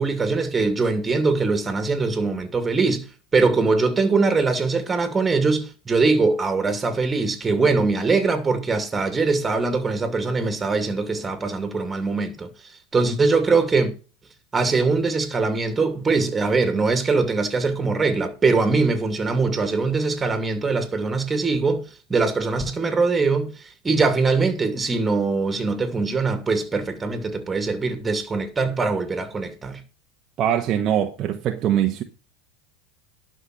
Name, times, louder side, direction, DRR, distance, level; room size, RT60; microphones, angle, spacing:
voice 1, 0.0-3.1 3.3-12.5 12.9-13.9 14.5-21.8 22.1-29.8, right 4 dB, 20° right, 2.6 m, -22 dB
voice 2, 30.4-32.0, right 10 dB, 40° right, 1.2 m, -22 dB
11.5 x 6.1 x 6.3 m
hypercardioid pair, 95°, 0 cm